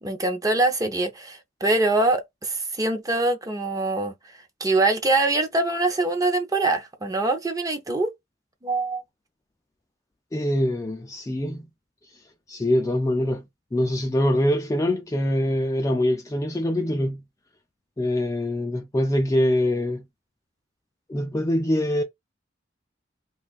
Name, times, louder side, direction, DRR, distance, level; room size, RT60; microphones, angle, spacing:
voice 1, 0.0-4.1 4.6-8.1 8.6-9.0, right 2 dB, 20° right, 0.7 m, -23 dB
voice 2, 10.3-11.7 12.5-13.4 13.7-17.2 18.0-20.0 21.1-22.0, left 1 dB, 15° left, 0.4 m, -24 dB
2.6 x 2.4 x 4.0 m
head